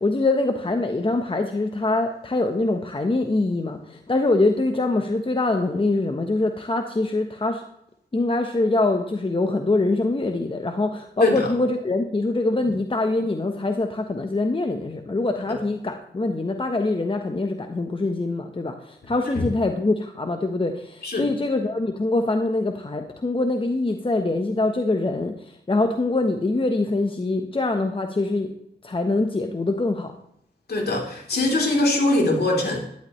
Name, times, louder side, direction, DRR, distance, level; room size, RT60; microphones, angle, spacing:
voice 1, 0.0-7.6 8.1-28.5 28.8-30.1, left 2 dB, 30° left, 5 dB, 1.2 m, -24 dB
voice 2, 30.7-32.9, left 2 dB, 60° left, 0 dB, 3.6 m, -22 dB
11.5 x 11.0 x 3.3 m, 0.73 s
cardioid pair, 60°, 18 cm